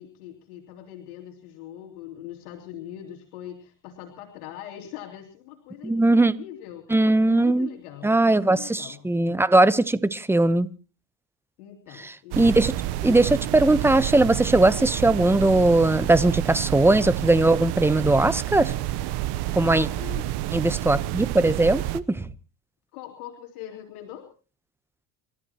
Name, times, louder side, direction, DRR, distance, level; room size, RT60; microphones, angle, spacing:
voice 1, 0.0-9.1 11.6-12.6 19.6-20.3 22.9-24.3, left 11 dB, 90° left, 2.9 m, -42 dB
voice 2, 5.8-6.3 6.9-7.7 8.0-10.7 12.0-12.7 13.0-18.7 19.6-19.9 20.5-22.2, right 2 dB, 5° right, 0.9 m, -20 dB
sound 1, 12.3-22.0, right 14 dB, 65° right, 1.1 m, -29 dB
29.0 x 13.5 x 3.0 m
supercardioid pair, 105°, 44 cm